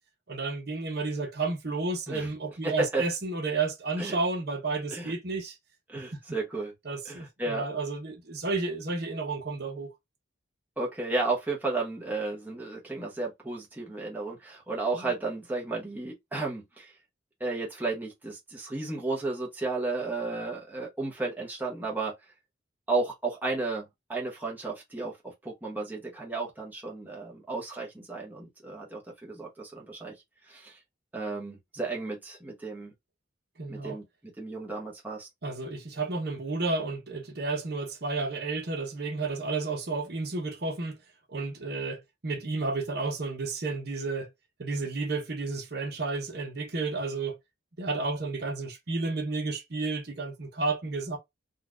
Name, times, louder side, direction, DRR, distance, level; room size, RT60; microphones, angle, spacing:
voice 1, 0.3-5.6 6.8-9.9 14.9-15.1 33.6-34.0 35.4-41.0 41.3-44.3 44.6-47.4 47.8-51.2, right 3 dB, 55° right, 0.8 m, -32 dB
voice 2, 2.6-3.0 4.0-4.2 4.9-5.1 5.9-6.7 7.0-7.6 10.8-16.9 17.4-22.1 22.9-23.8 24.1-25.1 25.4-30.1 30.5-30.8 31.1-32.9 33.7-34.0 34.4-35.3, right 3 dB, 10° right, 0.8 m, -33 dB
3.9 x 2.4 x 2.4 m
head